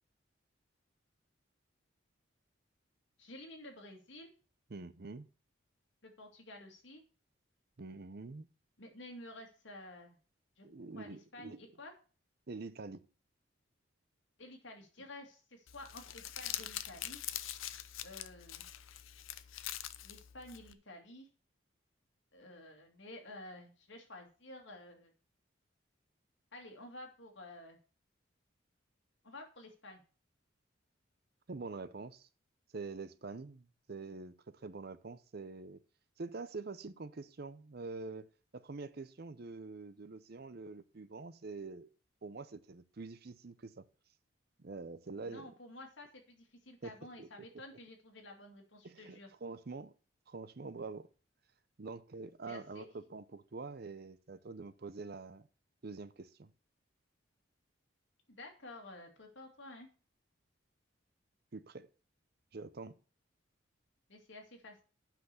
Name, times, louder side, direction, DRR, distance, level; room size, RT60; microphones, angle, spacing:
voice 1, 3.2-4.3 6.0-7.0 8.8-10.2 10.6-10.7 11.0-11.9 14.4-17.2 18.0-18.7 20.0-21.3 22.3-25.1 26.5-27.8 29.2-30.0 45.2-49.3 52.5-52.9 58.3-59.9 64.1-64.8, left 1 dB, 65° left, 2.4 m, -51 dB
voice 2, 4.7-5.3 7.8-8.5 10.6-11.6 12.5-13.0 31.5-32.3 32.7-35.8 36.2-41.9 42.2-43.9 44.6-45.5 46.8-47.3 48.8-49.9 50.3-51.1 51.8-55.5 55.8-56.5 61.5-61.9 62.5-63.0, right 3 dB, 50° right, 0.6 m, -46 dB
Crumpling crinkling, 15.7-20.7, left 12 dB, 85° left, 0.6 m, -44 dB
8.0 x 6.0 x 6.8 m
head